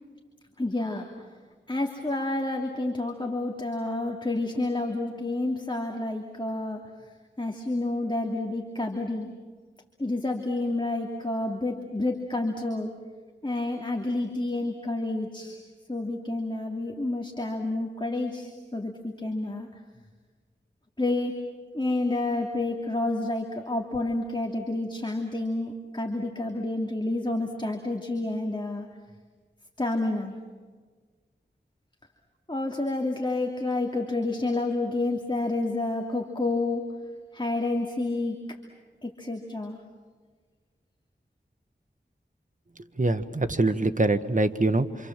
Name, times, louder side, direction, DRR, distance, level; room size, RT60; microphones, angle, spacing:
voice 1, 0.6-1.1 1.7-6.8 7.4-9.3 10.0-12.9 13.4-15.6 15.9-19.7 21.0-21.3 21.7-28.9 29.8-30.3 32.5-37.0 37.3-38.4 39.0-39.8, left 2 dB, 25° left, 1 dB, 2.8 m, -29 dB
voice 2, 43.0-45.1, right 2 dB, 40° right, 9 dB, 1.5 m, -24 dB
27.5 x 27.0 x 7.5 m, 1.5 s
wide cardioid pair, 45°, 20 cm